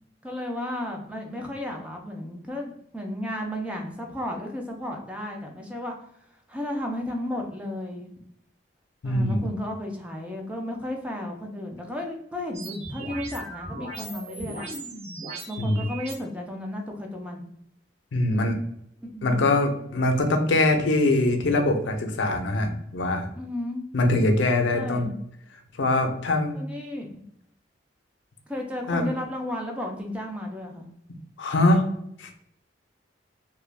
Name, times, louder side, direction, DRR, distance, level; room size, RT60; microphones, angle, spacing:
voice 1, 0.2-6.0 6.5-8.1 9.0-14.7 15.5-17.4 19.0-19.4 23.4-23.8 24.7-25.2 26.5-27.2 28.5-30.9, left 1 dB, 5° right, 1 dB, 0.4 m, -33 dB
voice 2, 9.0-9.5 15.6-15.9 18.1-18.6 19.2-23.3 23.9-25.1 25.8-26.6 28.9-29.1 31.4-31.9 32.2-32.4, left 2 dB, 80° left, 5 dB, 0.5 m, -23 dB
sound 1, 12.5-16.1, right 2 dB, 35° right, 0.8 m, -37 dB
2.3 x 2.1 x 3.2 m, 0.75 s
head